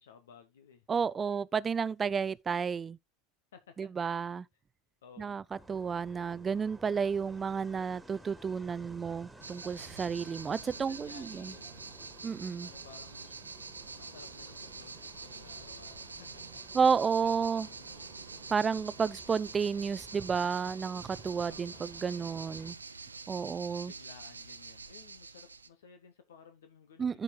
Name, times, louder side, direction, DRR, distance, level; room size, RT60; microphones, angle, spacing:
voice 1, 0.0-0.9 3.5-3.9 5.0-5.4 10.0-10.3 10.7-11.7 12.6-13.4 14.0-16.4 17.0-17.9 21.4-21.8 23.3-27.2, left 6 dB, 75° left, 1.1 m, -56 dB
voice 2, 0.9-3.0 3.8-4.5 5.2-5.4 5.7-11.5 12.2-12.7 16.7-17.7 18.5-22.8 23.3-23.9 27.0-27.2, right 6 dB, 25° right, 0.5 m, -31 dB
sound 1, 5.5-22.7, right 1 dB, 5° right, 1.9 m, -55 dB
sound 2, 9.4-25.7, right 4 dB, 90° right, 0.6 m, -46 dB
14.5 x 5.1 x 2.3 m
figure-of-eight pair, 80°, 0 cm